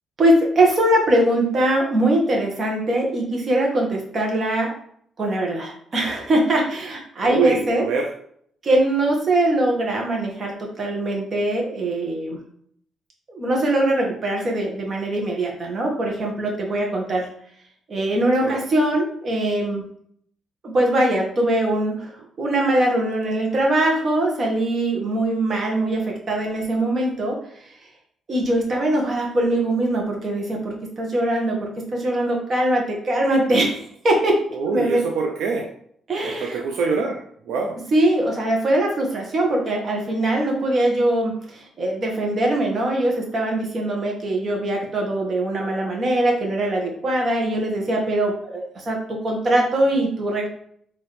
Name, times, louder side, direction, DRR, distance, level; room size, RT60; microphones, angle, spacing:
voice 1, 0.2-4.7 5.2-7.9 8.6-12.4 13.3-17.3 17.9-19.8 20.6-22.1 22.4-27.4 28.3-33.8 34.0-34.4 34.7-35.0 36.1-36.6 37.9-50.5, right 1 dB, 45° right, 0 dB, 1.4 m, -22 dB
voice 2, 7.2-8.1 18.4-18.6 34.5-35.7 36.2-37.8, right 5 dB, 80° right, 1 dB, 0.5 m, -25 dB
4.7 x 3.0 x 3.2 m, 0.64 s
cardioid pair, 90°, 0 cm